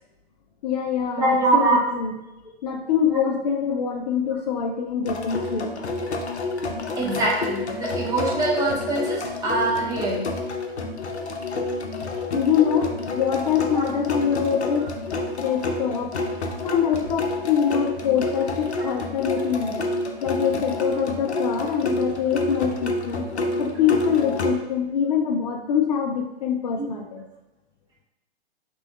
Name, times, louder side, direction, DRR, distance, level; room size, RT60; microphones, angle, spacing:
voice 1, 0.6-2.2 2.6-5.7 12.3-14.9 15.4-16.1 16.6-20.0 20.2-23.3 23.6-27.2, left 7 dB, 40° left, 2 dB, 0.4 m, -24 dB
voice 2, 1.2-1.8 7.0-10.3 13.7-13.8 26.8-26.9, right 2 dB, 10° right, -3 dB, 0.6 m, -23 dB
sound 1, 5.0-24.6, left 2 dB, 85° left, 0.6 m, -29 dB
3.4 x 2.9 x 3.4 m, 0.97 s
figure-of-eight pair, 120°, 32 cm